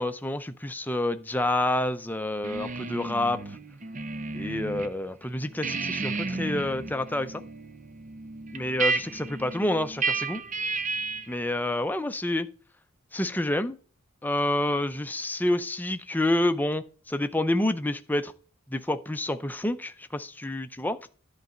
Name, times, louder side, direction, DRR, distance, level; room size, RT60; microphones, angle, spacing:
voice 1, 0.0-3.4 4.3-7.4 8.5-10.4 11.3-12.5 13.1-13.8 14.2-18.3 18.7-21.0, left 1 dB, 10° left, 9 dB, 0.5 m, -28 dB
sound 1, 2.4-4.9 5.2-11.4, right 3 dB, 35° right, 0.6 m, -32 dB
11.0 x 4.0 x 7.6 m, 0.39 s
head